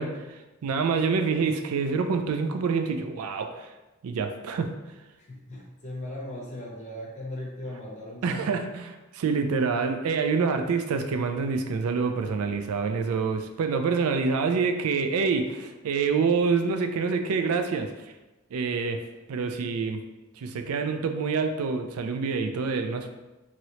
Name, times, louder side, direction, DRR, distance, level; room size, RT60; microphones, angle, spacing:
voice 1, 0.0-3.7 4.0-4.7 8.2-17.9 18.5-19.0 19.3-20.0 20.4-23.1, right 5 dB, 85° right, 7 dB, 0.4 m, -27 dB
voice 2, 5.2-8.6, left 1 dB, 35° left, -3 dB, 0.7 m, -38 dB
3.0 x 2.9 x 2.7 m, 1.1 s
head